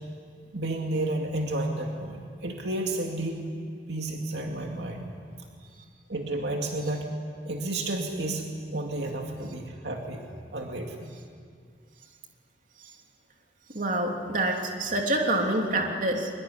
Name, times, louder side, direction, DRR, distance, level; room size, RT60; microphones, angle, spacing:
voice 1, 0.5-3.5 3.9-5.1 6.1-7.1 7.4-10.2 10.5-11.1, right 2 dB, 70° right, 2 dB, 2.4 m, -31 dB
voice 2, 13.7-16.3, right 1 dB, 45° right, 1 dB, 3.1 m, -26 dB
24.5 x 22.5 x 10.0 m, 2.1 s
head